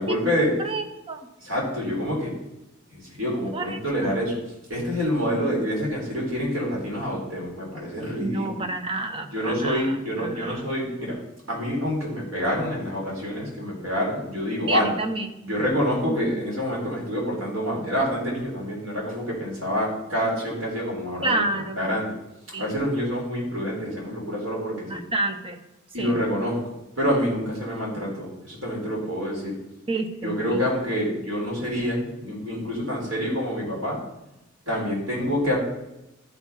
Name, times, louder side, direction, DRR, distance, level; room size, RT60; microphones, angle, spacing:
voice 1, 0.0-0.5 1.4-2.3 2.9-4.4 4.7-8.7 9.3-11.2 11.5-14.9 15.4-21.4 21.8-22.1 22.6-25.0 25.9-29.6 30.2-34.0 34.7-35.6, equal, 70° right, -3 dB, 3.9 m, -27 dB
voice 2, 0.6-1.2 3.5-3.8 8.2-10.6 14.7-15.6 16.1-16.4 21.2-22.0 22.5-22.8 24.9-25.6 26.0-26.2 29.9-30.6, right 2 dB, 25° right, 7 dB, 0.9 m, -29 dB
13.5 x 4.8 x 5.6 m, 0.94 s
head